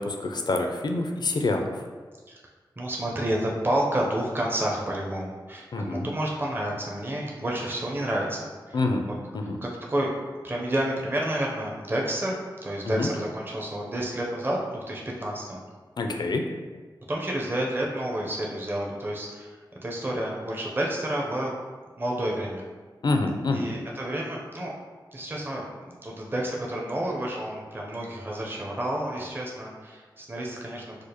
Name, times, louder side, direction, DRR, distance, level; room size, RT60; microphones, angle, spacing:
voice 1, 0.0-1.8 5.7-6.1 8.7-9.0 9.3-9.6 12.9-13.1 16.0-16.4 23.0-23.7, left 2 dB, 60° left, 3 dB, 0.4 m, -26 dB
voice 2, 2.8-9.2 9.4-10.1 10.4-15.6 17.1-21.5 22.0-22.6 23.5-24.7 25.1-31.0, right 1 dB, 25° right, -2 dB, 0.6 m, -30 dB
4.8 x 2.1 x 2.9 m, 1.4 s
cardioid pair, 55°, 8 cm